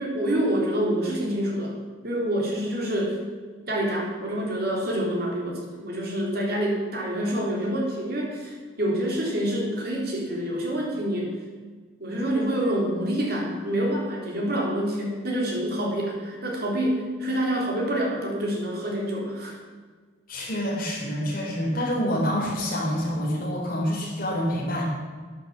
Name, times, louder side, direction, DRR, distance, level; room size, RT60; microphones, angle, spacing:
voice 1, 0.0-1.8 2.0-3.2 3.7-11.3 12.0-19.6, right 1 dB, 50° right, -2 dB, 3.6 m, -27 dB
voice 2, 20.3-24.8, equal, 45° left, -3 dB, 4.5 m, -27 dB
12.0 x 10.0 x 7.3 m, 1.5 s
head